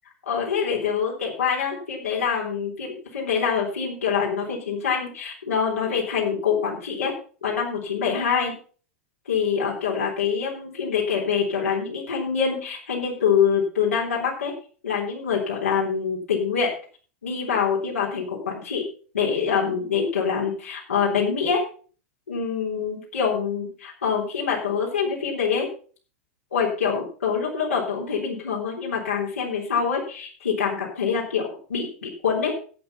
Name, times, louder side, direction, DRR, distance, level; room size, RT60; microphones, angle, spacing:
voice 1, 0.3-7.1 7.4-8.5 9.3-14.5 14.8-16.7 17.2-18.8 19.1-21.6 22.3-25.7 26.5-32.5, left 6 dB, 85° left, -3 dB, 3.6 m, -25 dB
11.5 x 8.1 x 5.4 m, 0.40 s
hypercardioid pair, 95°, 7 cm